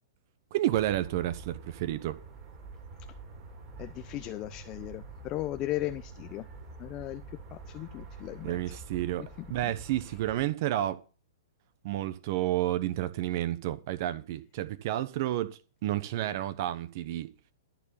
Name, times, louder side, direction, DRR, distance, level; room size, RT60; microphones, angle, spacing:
voice 1, 0.5-2.2 8.4-11.0 11.8-17.3, right 13 dB, 50° right, 1.0 m, -31 dB
sound 1, 0.7-10.5, right 3 dB, 25° right, 3.8 m, -47 dB
voice 2, 3.8-6.5 6.8-8.6 9.2-9.3 9.6-9.7, left 15 dB, 30° left, 0.6 m, -37 dB
13.5 x 4.7 x 8.5 m
hypercardioid pair, 145°, 2 cm